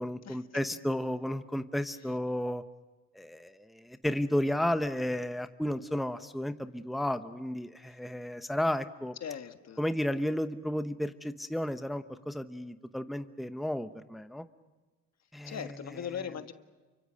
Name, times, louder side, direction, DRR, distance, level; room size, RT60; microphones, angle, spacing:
voice 1, 0.0-2.6 3.1-9.1 9.8-14.4 15.3-15.6, left 1 dB, ahead, 10 dB, 0.9 m, -33 dB
voice 2, 9.2-9.8 15.4-16.5, left 8 dB, 60° left, 9 dB, 1.6 m, -39 dB
29.0 x 24.5 x 6.4 m, 1.3 s
cardioid pair, 90°, 30 cm